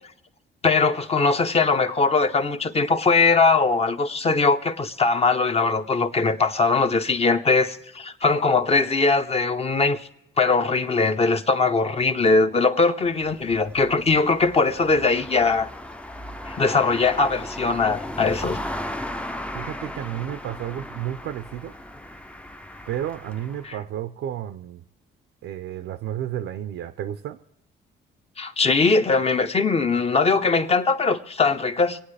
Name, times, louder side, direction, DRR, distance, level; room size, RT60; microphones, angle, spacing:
voice 1, 0.6-10.1 10.4-15.7 16.5-18.6 23.6-23.8 28.4-32.0, left 4 dB, 30° left, 0.8 m, -21 dB
sound 1, 13.1-23.7, left 1 dB, 5° left, 0.5 m, -36 dB
voice 2, 19.5-21.7 22.9-24.8 25.4-27.4, right 11 dB, 80° right, 0.6 m, -32 dB
26.0 x 8.9 x 3.3 m
cardioid pair, 90°, 20 cm